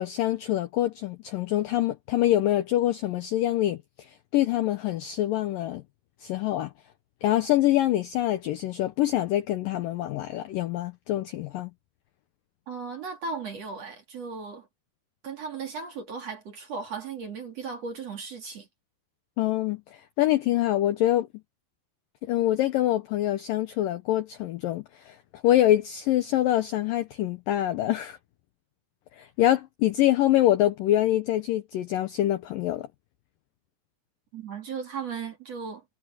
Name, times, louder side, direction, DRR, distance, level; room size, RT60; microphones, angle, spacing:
voice 1, 0.0-5.8 6.2-6.7 7.2-11.7 19.4-21.3 22.2-28.2 29.2-32.9, left 13 dB, 80° left, 2.0 m, -25 dB
voice 2, 12.7-14.7 15.2-18.7 34.3-35.8, right 5 dB, 45° right, 2.8 m, -36 dB
omnidirectional pair, 5.1 m